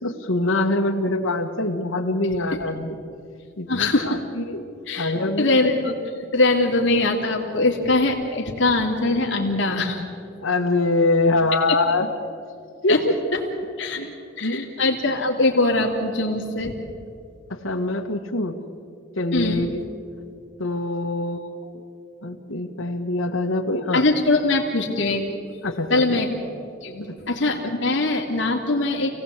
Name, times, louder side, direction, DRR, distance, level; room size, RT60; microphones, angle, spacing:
voice 1, 0.0-3.0 3.6-4.6 4.9-5.5 10.4-12.1 12.8-13.1 13.9-14.1 14.4-14.6 17.5-18.6 19.2-19.8 20.6-21.8 22.2-24.0 25.6-26.2 27.1-27.2, left 2 dB, 85° left, 3 dB, 1.7 m, -24 dB
voice 2, 3.7-4.2 4.9-6.0 6.3-10.0 11.7-11.8 12.9-13.0 13.8-14.0 14.4-16.7 19.3-19.6 23.9-25.2 25.9-26.3 26.8-29.1, left 2 dB, 65° left, 1 dB, 2.7 m, -22 dB
27.5 x 18.0 x 8.3 m, 2.4 s
head